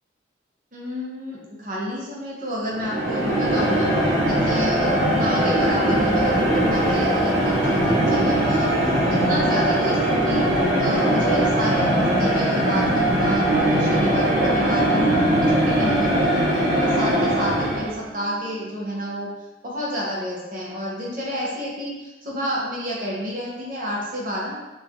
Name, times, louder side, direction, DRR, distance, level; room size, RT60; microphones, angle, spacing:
voice 1, 0.7-10.4 10.8-19.3 19.6-24.6, equal, 45° right, -4 dB, 0.6 m, -29 dB
sound 1, 2.7-18.0, right 1 dB, 85° right, 0.8 m, -20 dB
sound 2, 6.3-19.2, left 1 dB, ahead, 0.3 m, -38 dB
2.8 x 2.3 x 2.5 m, 1.0 s
head